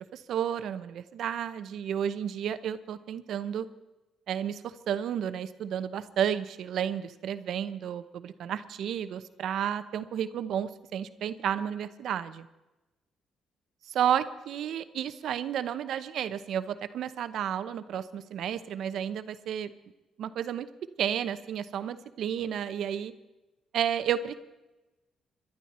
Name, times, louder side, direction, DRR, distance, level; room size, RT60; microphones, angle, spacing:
voice 1, 0.1-3.7 4.3-12.5 13.9-19.7 20.2-20.7 21.0-23.1 23.7-24.3, right 9 dB, 75° right, 12 dB, 0.8 m, -32 dB
22.0 x 12.0 x 4.3 m, 1.0 s
cardioid pair, 90°, 0 cm